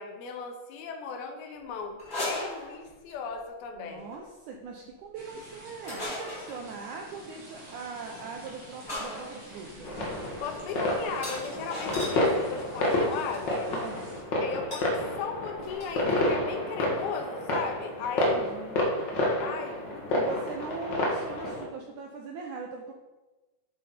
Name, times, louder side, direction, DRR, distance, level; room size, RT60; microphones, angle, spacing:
voice 1, 0.0-4.1 10.4-13.8 14.4-18.5 19.2-20.4, left 5 dB, 80° left, 4 dB, 3.0 m, -37 dB
sound 1, 2.0-3.2 4.0-4.2 5.8-6.6 8.1-8.3 8.9-12.2 13.1-13.4 14.7-14.9 15.2-15.3 15.5-16.0, left 1 dB, 15° left, 3.7 m, -37 dB
voice 2, 3.7-9.9 13.7-14.1 18.2-18.8 20.1-22.9, right 4 dB, 80° right, 2 dB, 1.8 m, -41 dB
sound 2, 5.1-14.2, right 1 dB, 30° right, 2.4 m, -49 dB
sound 3, 9.8-21.6, left 1 dB, 55° left, 1.2 m, -29 dB
9.6 x 7.5 x 4.4 m, 1.1 s
omnidirectional pair, 4.4 m